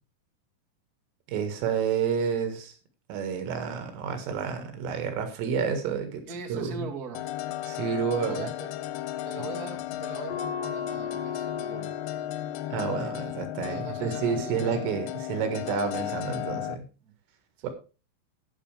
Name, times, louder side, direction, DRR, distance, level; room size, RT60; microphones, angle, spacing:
voice 1, 1.3-2.7 3.1-6.2 6.5-6.9 7.6-8.5 12.7-16.9 17.6-17.7, right 6 dB, 75° right, 7 dB, 4.2 m, -30 dB
voice 2, 6.3-7.3 8.2-8.7 9.2-11.9 13.6-14.9 17.0-17.1 17.6-17.7, right 4 dB, 40° right, 2 dB, 1.3 m, -40 dB
sound 1, 7.1-16.8, left 13 dB, 90° left, 2.4 m, -35 dB
sound 2, 10.3-15.4, left 7 dB, 75° left, 5.9 m, -39 dB
19.0 x 6.7 x 3.4 m, 0.33 s
omnidirectional pair, 5.9 m